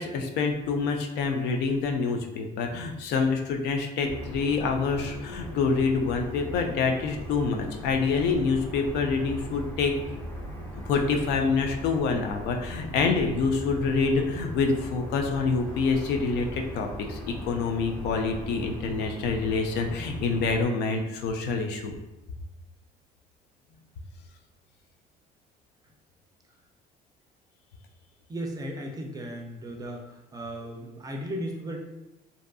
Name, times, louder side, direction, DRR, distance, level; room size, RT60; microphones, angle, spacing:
voice 1, 0.0-9.9 10.9-22.0, left 4 dB, 80° left, 4 dB, 0.4 m, -26 dB
sound 1, 4.1-20.6, equal, 10° left, 0.8 m, -39 dB
voice 2, 28.3-31.8, equal, 20° right, 1 dB, 0.4 m, -36 dB
2.6 x 2.4 x 2.3 m, 0.95 s
cardioid pair, 110°, 17 cm